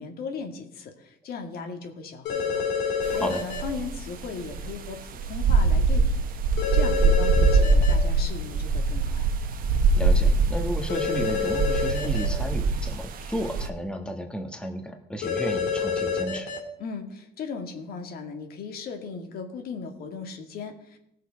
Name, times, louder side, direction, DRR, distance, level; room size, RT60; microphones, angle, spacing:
voice 1, 0.0-6.2 6.7-9.3 16.8-21.0, left 5 dB, 65° left, 4 dB, 1.9 m, -37 dB
sound 1, 2.3-3.6 6.6-7.9 10.9-12.3 15.2-16.6, left 6 dB, 85° left, 2.6 m, -27 dB
sound 2, 3.0-3.2 3.5-13.7, right 3 dB, 55° right, 1.1 m, -23 dB
voice 2, 9.9-16.5, equal, 5° left, 4 dB, 1.4 m, -33 dB
17.5 x 6.5 x 5.1 m, 0.78 s
cardioid pair, 110°, 17 cm